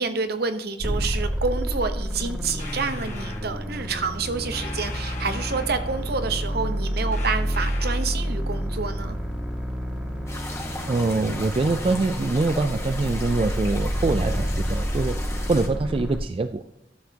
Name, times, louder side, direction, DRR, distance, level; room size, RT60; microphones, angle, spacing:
voice 1, 0.0-9.2, right 4 dB, 60° right, 9 dB, 0.9 m, -28 dB
sound 1, 0.8-16.2, equal, 5° right, 1.8 m, -29 dB
sound 2, 2.6-3.5 4.5-6.1 7.1-8.2, left 4 dB, 40° left, 1.5 m, -40 dB
sound 3, 10.3-15.7, left 2 dB, 15° left, 1.4 m, -37 dB
voice 2, 10.9-15.2 15.5-16.6, right 3 dB, 30° right, 10 dB, 0.3 m, -24 dB
12.5 x 7.1 x 2.8 m, 0.81 s
head